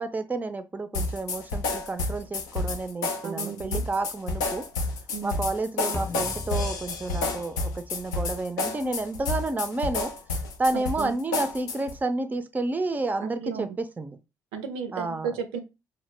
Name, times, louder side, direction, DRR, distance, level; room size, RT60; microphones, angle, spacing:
voice 1, 0.0-4.7 5.2-10.1 10.6-14.2 14.9-15.3, right 2 dB, 20° right, 0.4 m, -30 dB
sound 1, 0.9-12.0, left 3 dB, 90° left, 0.4 m, -30 dB
voice 2, 3.2-3.9 5.1-5.4 10.7-11.2 13.2-13.8 14.5-15.6, right 6 dB, 80° right, 0.4 m, -34 dB
sound 2, 5.9-8.4, left 2 dB, 30° left, 0.5 m, -38 dB
2.0 x 2.0 x 3.2 m
hypercardioid pair, 55°, 9 cm